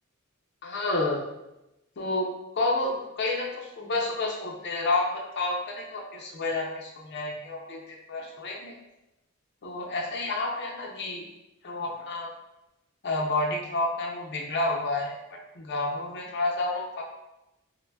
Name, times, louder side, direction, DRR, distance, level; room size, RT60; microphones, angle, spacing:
voice 1, 0.6-1.3 2.0-2.3 2.5-8.7 9.6-11.3 11.6-12.3 13.0-15.2 15.5-17.0, left 2 dB, 55° left, -1 dB, 0.5 m, -30 dB
3.2 x 2.1 x 2.2 m, 0.93 s
head